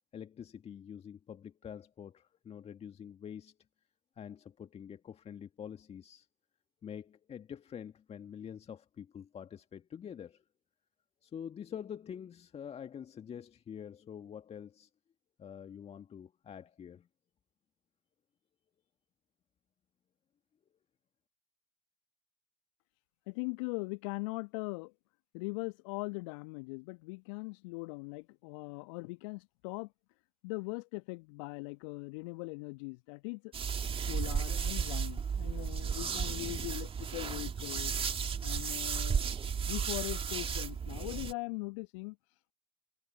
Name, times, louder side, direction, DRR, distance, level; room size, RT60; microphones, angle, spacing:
voice 1, 0.1-3.6 4.2-6.3 6.8-10.4 11.2-14.9 15.4-17.1, left 8 dB, 35° left, 1.9 m, -46 dB
voice 2, 23.3-24.9 25.3-29.9 30.4-33.5 34.1-37.9 38.4-39.2 39.6-42.2, left 29 dB, 65° left, 1.3 m, -40 dB
sound 1, 33.5-41.3, right 6 dB, 35° right, 2.1 m, -34 dB
figure-of-eight pair, 60°, 17 cm